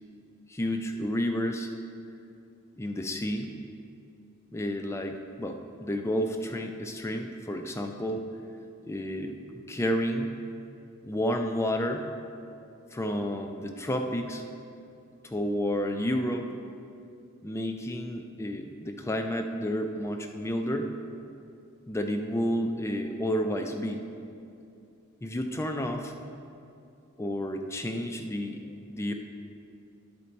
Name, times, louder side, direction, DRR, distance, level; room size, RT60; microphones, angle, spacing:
voice 1, 0.5-1.7 2.8-3.5 4.5-8.3 8.8-10.3 11.0-12.1 12.9-14.4 15.2-16.5 17.4-20.9 21.9-24.0 25.2-26.1 27.2-29.1, equal, 10° left, 4 dB, 0.4 m, -31 dB
10.5 x 4.3 x 4.1 m, 2.6 s
head